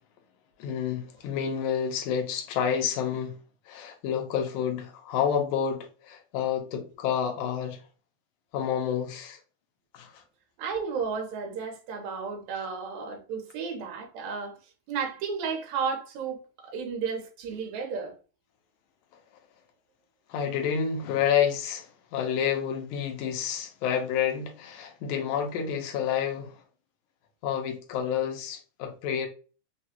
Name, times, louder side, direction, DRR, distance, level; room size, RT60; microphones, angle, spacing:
voice 1, 0.6-3.4 3.7-7.8 8.5-9.4 9.9-10.1 20.3-26.6 27.4-29.3, left 8 dB, 80° left, 2.3 m, -29 dB
voice 2, 10.6-14.6 14.9-18.2, right 5 dB, 75° right, 2.3 m, -33 dB
5.6 x 2.3 x 2.9 m
omnidirectional pair, 3.5 m